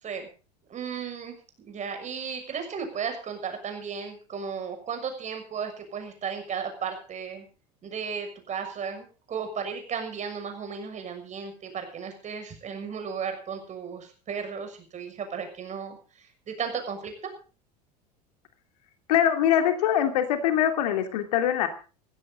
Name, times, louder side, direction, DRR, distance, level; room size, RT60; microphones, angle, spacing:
voice 1, 0.7-1.4 1.6-7.4 7.8-16.0 16.5-17.1, right 6 dB, 35° right, 6 dB, 6.4 m, -34 dB
voice 2, 19.1-21.7, left 10 dB, 70° left, 7 dB, 2.8 m, -23 dB
17.5 x 15.5 x 3.9 m, 0.36 s
hypercardioid pair, 80°, 21 cm